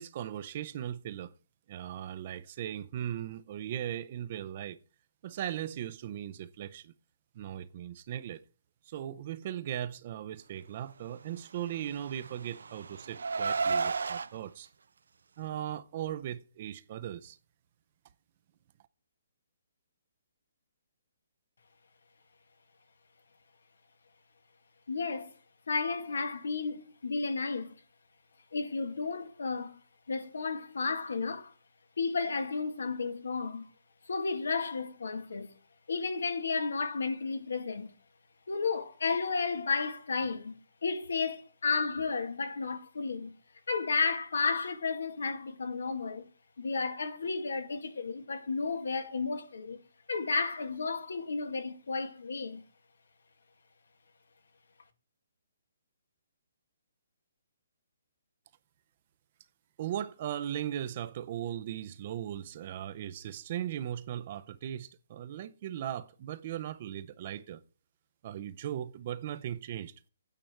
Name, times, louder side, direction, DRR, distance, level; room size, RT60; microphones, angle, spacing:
voice 1, 0.0-1.3 1.7-4.8 5.2-6.9 7.3-8.4 8.9-14.7 15.4-17.4 59.8-67.6 68.2-69.9, right 11 dB, 30° right, 0.6 m, -38 dB
Car, 11.8-14.3, right 4 dB, 90° right, 0.6 m, -32 dB
voice 2, 24.9-25.3 25.7-27.7 28.5-29.8 30.1-31.5 32.0-33.7 34.1-35.6 35.9-37.9 38.5-43.4 43.7-46.3 46.6-49.8 50.1-52.6, left 4 dB, 85° left, 2.0 m, -32 dB
9.1 x 8.4 x 4.5 m
hypercardioid pair, 170°, 0 cm